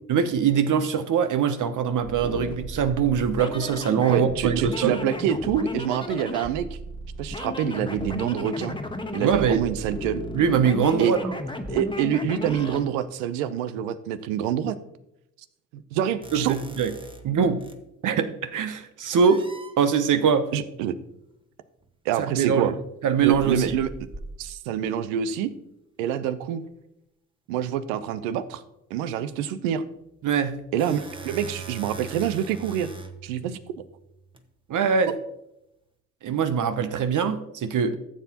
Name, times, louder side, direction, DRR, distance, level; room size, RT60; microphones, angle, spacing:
voice 1, 0.1-5.0 9.2-9.6 10.3-11.2 16.3-16.9 17.2-17.6 18.0-19.5 19.8-20.5 22.2-22.7 23.0-23.7 30.2-30.6 34.7-35.1 36.2-38.0, right 7 dB, 50° right, 0.8 m, -22 dB
sound 1, 2.0-12.8, left 1 dB, 10° left, 1.3 m, -34 dB
voice 2, 4.1-6.7 7.2-8.8 9.1-10.2 11.0-11.1 11.7-14.8 15.7-16.6 20.5-20.9 22.1-22.7 23.2-23.9 24.4-25.5 26.0-26.6 27.5-28.6 28.9-29.8 30.7-32.9 33.2-33.6 35.1-35.2, right 9 dB, 80° right, 0.8 m, -26 dB
sound 2, 16.2-17.9 19.1-19.8 21.8-21.9 23.2-24.8 30.3-34.4, right 3 dB, 15° right, 1.3 m, -42 dB
14.5 x 7.2 x 2.9 m
hypercardioid pair, 55°, 40 cm